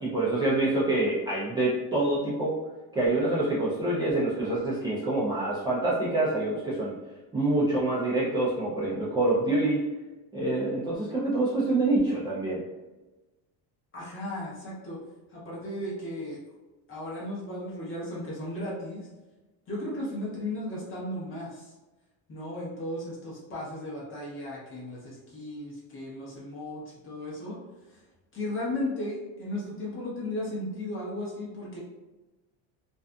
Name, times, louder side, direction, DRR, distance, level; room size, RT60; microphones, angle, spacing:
voice 1, 0.0-2.5 2.9-6.9 7.3-9.9 10.3-12.6, right 2 dB, 10° right, -9 dB, 0.4 m, -26 dB
voice 2, 13.9-15.0 15.3-16.4 16.9-19.1 19.7-21.7 22.3-27.6 27.9-28.0 28.3-31.8, left 1 dB, 30° left, -5 dB, 0.9 m, -35 dB
2.6 x 2.3 x 2.2 m, 1.1 s
cardioid pair, 135°, 38 cm